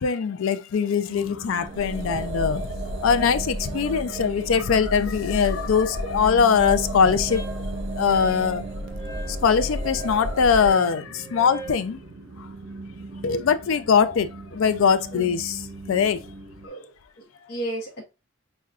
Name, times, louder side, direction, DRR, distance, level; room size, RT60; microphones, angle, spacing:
voice 1, 0.0-7.5 7.9-8.6 9.3-12.0 12.4-12.5 13.2-16.2, left 6 dB, 65° left, 0.4 m, -22 dB
sound 1, 1.1-16.7, right 3 dB, 85° right, 1.0 m, -40 dB
sound 2, 1.6-10.7, equal, 55° right, 0.5 m, -32 dB
Wind instrument woodwind instrument, 7.3-11.9, right 3 dB, 20° right, 0.9 m, -42 dB
voice 2, 16.6-18.0, right 1 dB, 45° left, 0.7 m, -34 dB
6.0 x 2.2 x 2.4 m
head